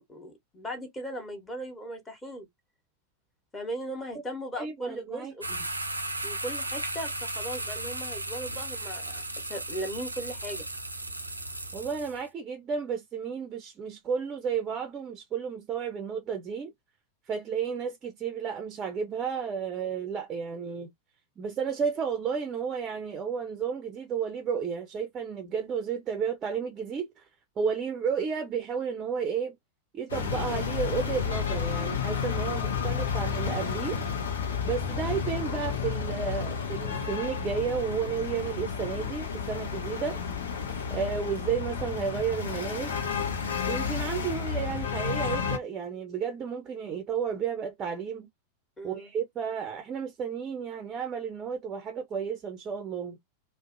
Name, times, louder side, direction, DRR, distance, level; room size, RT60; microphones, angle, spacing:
voice 1, 0.0-2.5 3.5-5.5 6.2-10.6 48.8-49.1, right 1 dB, 15° left, 1.0 m, -38 dB
voice 2, 4.6-5.6 11.7-16.7 17.3-20.9 21.4-27.3 27.6-29.5 29.9-34.0 34.6-40.2 40.9-42.9 43.7-48.3 48.8-53.2, right 6 dB, 25° right, 0.5 m, -32 dB
sound 1, 5.4-12.2, right 2 dB, 85° right, 0.4 m, -35 dB
sound 2, 30.1-45.6, left 6 dB, 70° left, 0.7 m, -31 dB
2.5 x 2.0 x 2.5 m
figure-of-eight pair, 90°, 0 cm